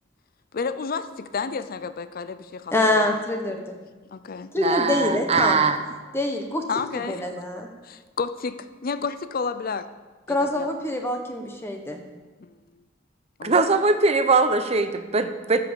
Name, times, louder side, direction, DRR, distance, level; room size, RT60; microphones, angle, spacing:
voice 1, 0.5-3.2 3.5-3.6 4.1-4.5 6.7-7.3 7.8-9.9 10.3-10.7 12.4-12.6 13.4-13.6, left 5 dB, 50° left, 12 dB, 0.5 m, -31 dB
voice 2, 2.7-3.8 4.5-5.6 6.1-6.6 7.1-7.7 10.3-12.0, left 2 dB, 15° left, 3 dB, 1.0 m, -25 dB
voice 3, 4.6-5.8 13.4-15.6, right 3 dB, 35° right, 9 dB, 0.7 m, -21 dB
13.0 x 5.7 x 7.2 m, 1.3 s
head